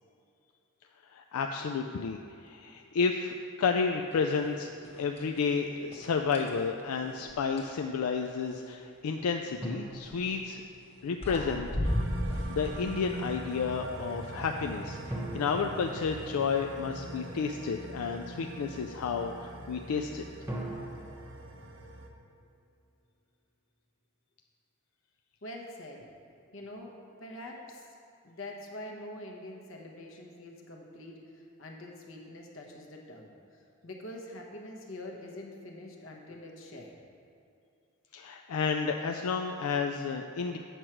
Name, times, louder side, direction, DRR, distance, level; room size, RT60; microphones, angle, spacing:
voice 1, 1.1-4.7 5.0-10.6 11.0-12.1 12.4-15.0 15.3-20.2 38.1-40.6, left 5 dB, 85° left, 4 dB, 0.4 m, -31 dB
sound 1, 4.3-4.5 4.8-5.5 5.9-7.8 10.0-10.3 10.9-11.0 11.2-12.7, equal, 25° left, 0.9 m, -34 dB
sound 2, 9.6-11.2 15.1-17.0 20.5-22.7, right 1 dB, 10° right, 0.9 m, -42 dB
sound 3, 11.8-22.1, right 2 dB, 60° right, 0.7 m, -42 dB
voice 2, 25.4-26.1 26.5-27.9 28.2-37.0, left 1 dB, 65° left, 1 dB, 1.0 m, -45 dB
8.1 x 6.1 x 4.5 m, 2.6 s
head